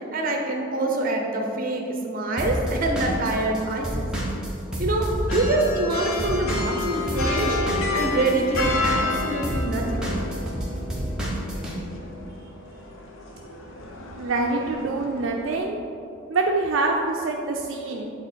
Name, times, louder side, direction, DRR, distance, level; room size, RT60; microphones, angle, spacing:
voice 1, 0.0-4.1 4.8-7.6 7.9-10.1, right 2 dB, 45° right, 2 dB, 0.8 m, -25 dB
Drum kit / Drum, 2.4-5.9 6.2-11.7, equal, 5° right, 1.0 m, -29 dB
sound 1, 5.3-15.6, left 3 dB, 70° left, 0.8 m, -31 dB
voice 2, 14.2-15.8 16.3-18.1, right 3 dB, 70° right, 1 dB, 0.4 m, -25 dB
8.5 x 3.6 x 4.4 m, 2.7 s
head